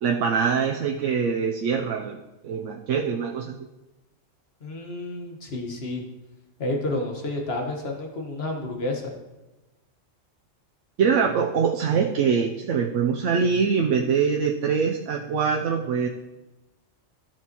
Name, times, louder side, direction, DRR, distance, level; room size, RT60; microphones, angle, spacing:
voice 1, 0.0-2.2 2.4-3.7 11.0-16.1, right 6 dB, 75° right, 2 dB, 1.0 m, -23 dB
voice 2, 4.6-6.0 6.6-9.1, left 2 dB, 50° left, 1 dB, 1.7 m, -30 dB
13.5 x 7.3 x 3.0 m, 1.1 s
omnidirectional pair, 1.3 m